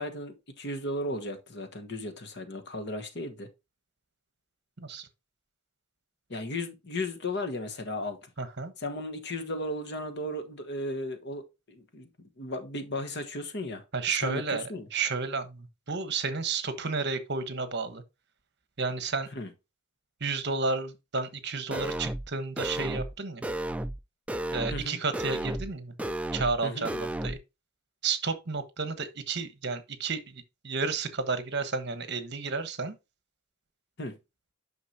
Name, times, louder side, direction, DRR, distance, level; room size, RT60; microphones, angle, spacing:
voice 1, 0.0-3.5 6.3-8.2 8.8-12.1 12.4-14.9 19.3-19.5 24.7-25.0 26.6-26.9 34.0-34.2, left 1 dB, 50° left, 1.3 m, -35 dB
voice 2, 4.8-5.1 8.4-8.7 13.9-18.0 18.8-19.3 20.2-23.5 24.5-25.9 26.3-27.4 28.0-32.9, right 4 dB, 50° right, 1.2 m, -32 dB
sound 1, 21.7-22.3 22.6-23.1 23.4-24.0 24.3-24.9 25.1-25.7 26.0-26.6 26.8-27.4, right 1 dB, 5° right, 0.3 m, -33 dB
9.4 x 6.0 x 2.8 m
head